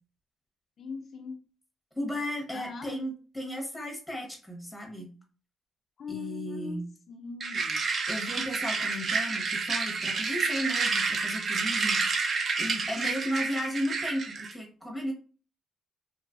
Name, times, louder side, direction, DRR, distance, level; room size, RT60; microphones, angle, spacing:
voice 1, 0.8-1.4 2.5-2.9 6.0-6.8 7.1-7.8, left 5 dB, 55° left, 0.3 m, -40 dB
voice 2, 1.9-5.1 6.1-6.9 8.1-12.0 12.6-15.1, equal, ahead, 0.9 m, -35 dB
sound 1, 7.4-14.5, right 4 dB, 50° right, 0.3 m, -29 dB
2.5 x 2.3 x 2.5 m
cardioid pair, 90°, 0 cm